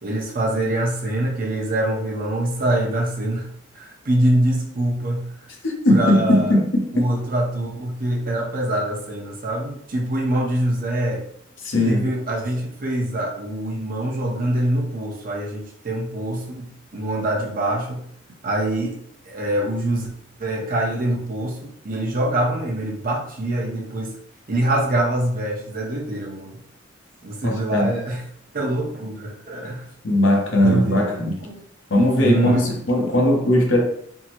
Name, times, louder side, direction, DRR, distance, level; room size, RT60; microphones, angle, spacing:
voice 1, 0.0-5.3 5.9-6.6 6.9-11.3 11.8-18.1 18.4-19.0 19.3-20.1 20.4-24.1 24.5-26.6 27.2-28.2 28.5-29.9 30.6-31.2 31.5-31.6 32.2-32.7, right 1 dB, 45° right, -1 dB, 0.7 m, -24 dB
voice 2, 5.6-7.1 11.6-12.0 27.4-27.9 30.0-31.5 31.9-33.8, left 1 dB, 70° left, 1 dB, 0.7 m, -19 dB
3.5 x 2.0 x 2.9 m, 0.64 s
head